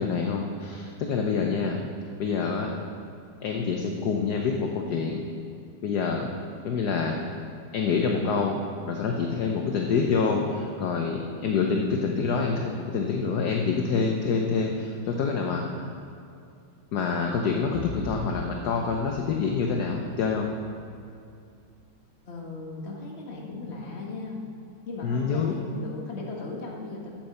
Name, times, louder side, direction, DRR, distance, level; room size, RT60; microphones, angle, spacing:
voice 1, 0.0-1.8 2.2-2.7 3.4-5.2 5.8-6.3 6.6-7.2 7.7-8.6 8.9-15.6 16.9-20.5 25.0-25.5, left 5 dB, 60° left, 2 dB, 1.2 m, -26 dB
sound 1, 17.7-21.6, left 3 dB, 85° left, 0.5 m, -42 dB
voice 2, 22.2-24.4 24.9-27.1, left 3 dB, 35° left, -1 dB, 1.7 m, -37 dB
8.8 x 8.5 x 7.1 m, 2.4 s
omnidirectional pair, 2.2 m